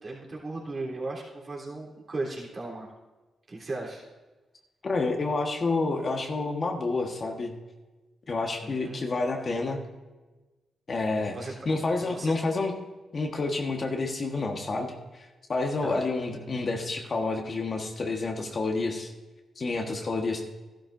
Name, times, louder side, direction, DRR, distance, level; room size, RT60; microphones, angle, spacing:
voice 1, 0.0-2.9 3.5-4.0 8.6-9.0 11.3-11.7 12.0-12.3 15.8-16.1, right 2 dB, 40° right, -3 dB, 3.4 m, -36 dB
voice 2, 4.8-7.5 8.3-9.8 10.9-11.4 11.6-12.7 13.1-14.9 15.1-19.1 19.6-20.5, left 3 dB, 50° left, 2 dB, 1.4 m, -29 dB
13.5 x 11.5 x 2.6 m, 1.2 s
supercardioid pair, 60°, 0 cm